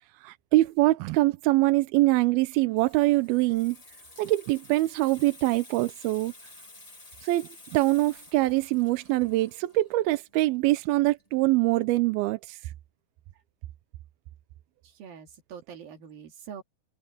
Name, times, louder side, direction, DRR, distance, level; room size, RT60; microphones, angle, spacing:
voice 1, 0.0-3.8 4.2-6.3 7.2-12.6, right 18 dB, 90° right, 2.6 m, -24 dB
Water tap faucet / Sink (filling or washing), 2.4-11.7 12.0-12.2, left 2 dB, 75° left, 0.3 m, -52 dB
voice 2, 14.8-16.6, right 7 dB, 70° right, 4.4 m, -44 dB
omnidirectional pair, 4.4 m